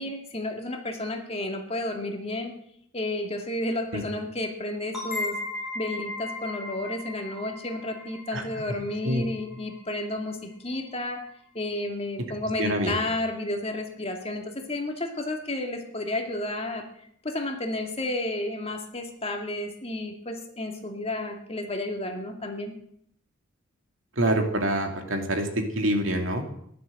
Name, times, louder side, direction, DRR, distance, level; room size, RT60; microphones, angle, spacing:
voice 1, 0.0-2.5 2.9-5.4 5.7-11.2 11.5-16.8 17.2-22.7, left 1 dB, 30° left, 4 dB, 2.3 m, -32 dB
sound 1, 4.9-10.4, left 2 dB, ahead, 6.1 m, -37 dB
voice 2, 12.6-13.0 24.2-26.4, right 1 dB, 70° right, 4 dB, 2.6 m, -26 dB
15.0 x 11.5 x 7.8 m, 0.70 s
head